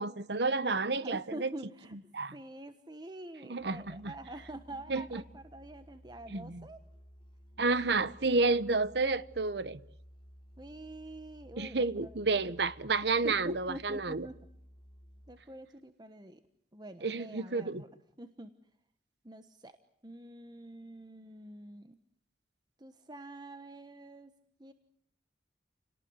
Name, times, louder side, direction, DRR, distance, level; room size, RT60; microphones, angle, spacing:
voice 1, 0.0-1.5 2.1-2.3 3.5-4.1 4.9-5.2 6.3-6.6 7.6-9.8 11.6-14.3 17.0-17.8, right 3 dB, 75° right, 1.1 m, -30 dB
voice 2, 1.0-6.8 10.6-12.5 13.2-14.4 15.3-16.4 16.7-17.9 18.2-18.5 19.2-19.8 20.0-22.0 22.8-24.3 24.6-24.7, right 1 dB, 25° right, 1.2 m, -46 dB
Musical instrument, 3.6-15.6, equal, 30° left, 2.9 m, -56 dB
29.5 x 18.5 x 9.6 m
head